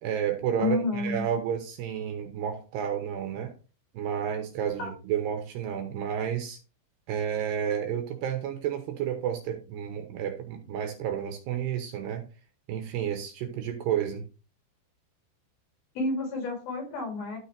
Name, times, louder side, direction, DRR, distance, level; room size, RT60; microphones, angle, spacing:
voice 1, 0.0-3.5 3.9-6.6 7.1-12.2 12.7-14.2, right 9 dB, 70° right, 5 dB, 2.9 m, -31 dB
voice 2, 0.6-1.2 4.8-4.9 15.9-17.4, left 3 dB, 55° left, 0 dB, 4.8 m, -30 dB
12.5 x 5.4 x 3.4 m, 0.33 s
omnidirectional pair, 5.5 m